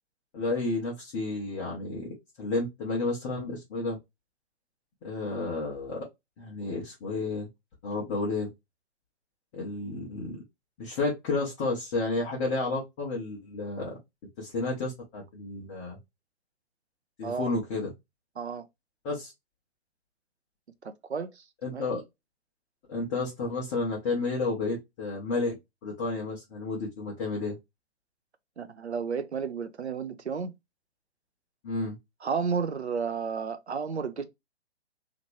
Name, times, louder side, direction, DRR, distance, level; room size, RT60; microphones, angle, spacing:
voice 1, 0.3-2.1 2.4-4.0 5.0-6.0 6.4-7.5 7.8-8.5 9.5-10.4 10.8-14.0 14.4-16.0 17.2-17.9 19.0-19.3 21.6-22.0 22.9-25.5 25.8-27.6 31.6-32.0, left 3 dB, 10° left, 0.5 m, -31 dB
voice 2, 18.4-18.7 20.8-21.4 21.7-21.9 28.6-30.5 32.2-34.2, right 6 dB, 80° right, 0.7 m, -32 dB
2.9 x 2.5 x 3.0 m
figure-of-eight pair, 125°, 33 cm